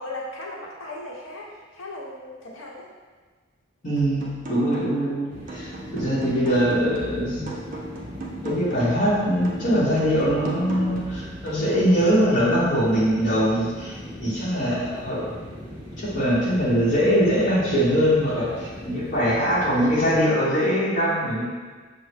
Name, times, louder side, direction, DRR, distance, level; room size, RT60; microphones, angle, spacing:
voice 1, 0.0-2.9, left 2 dB, 85° left, -3 dB, 0.8 m, -37 dB
voice 2, 3.8-7.5 8.4-15.2 16.0-21.5, equal, 40° left, -11 dB, 0.9 m, -22 dB
sound 1, 4.0-5.1 5.5-9.0 9.4-12.0, right 1 dB, 40° right, 0.5 m, -37 dB
sound 2, 5.3-20.2, equal, 10° right, 1.1 m, -39 dB
5.3 x 2.0 x 3.3 m, 1.4 s
head